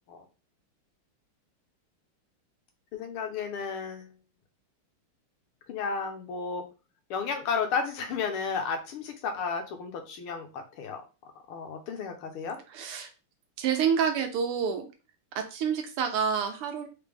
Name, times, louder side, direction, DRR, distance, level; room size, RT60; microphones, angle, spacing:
voice 1, 2.9-4.2 5.7-6.6 7.1-11.0 11.5-12.6, left 5 dB, 80° left, 5 dB, 1.7 m, -33 dB
voice 2, 12.7-13.1 13.6-14.9 15.3-16.9, right 7 dB, 90° right, 6 dB, 1.7 m, -28 dB
4.3 x 3.3 x 3.5 m, 0.32 s
omnidirectional pair, 2.4 m